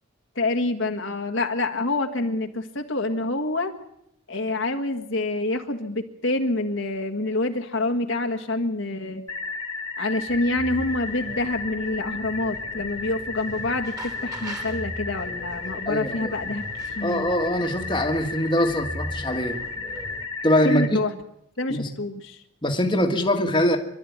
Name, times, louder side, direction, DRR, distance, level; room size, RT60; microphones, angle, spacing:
voice 1, 0.3-3.7 4.3-9.2 10.0-16.6 16.9-17.3 20.6-21.1 21.6-22.4, left 2 dB, 60° left, 5 dB, 1.7 m, -27 dB
sound 1, 9.3-20.9, left 4 dB, 85° left, 2.5 m, -34 dB
sound 2, 10.3-20.3, equal, 15° right, 2.8 m, -39 dB
voice 2, 15.9-16.4 17.0-19.6 20.4-21.0 21.7-21.9 22.6-23.8, left 1 dB, 20° left, 3 dB, 1.8 m, -23 dB
25.5 x 12.5 x 9.5 m, 0.79 s
head